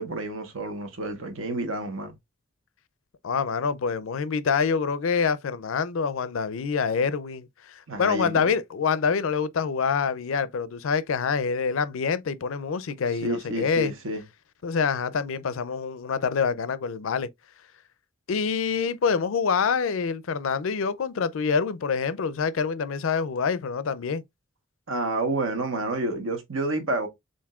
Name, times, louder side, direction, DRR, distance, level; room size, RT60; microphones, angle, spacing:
voice 1, 0.0-2.1 7.9-8.5 13.2-14.2 24.9-27.1, right 2 dB, 80° right, 1.2 m, -29 dB
voice 2, 3.2-13.9 14.6-17.3 18.3-24.2, left 5 dB, 75° left, 0.4 m, -26 dB
7.1 x 2.6 x 2.3 m
head